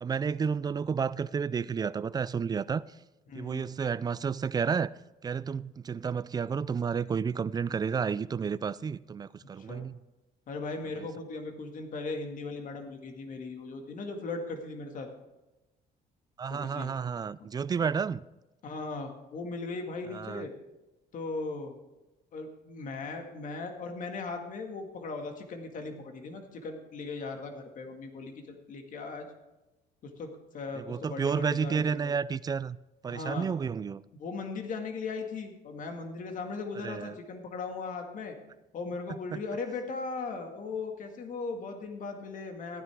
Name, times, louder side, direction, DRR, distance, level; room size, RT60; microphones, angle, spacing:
voice 1, 0.0-2.8 3.3-4.9 5.2-9.9 11.0-11.1 16.4-18.2 20.1-20.5 30.8-32.8 33.0-34.0 36.8-37.2, right 6 dB, 25° right, 0.3 m, -31 dB
voice 2, 3.3-3.7 9.6-9.9 10.5-15.1 16.5-16.9 18.6-20.5 21.1-21.7 22.3-29.3 30.0-32.1 33.1-33.5 34.1-38.3 38.7-42.8, left 3 dB, 50° left, 2.0 m, -38 dB
15.0 x 10.0 x 3.6 m
cardioid pair, 110°, 17 cm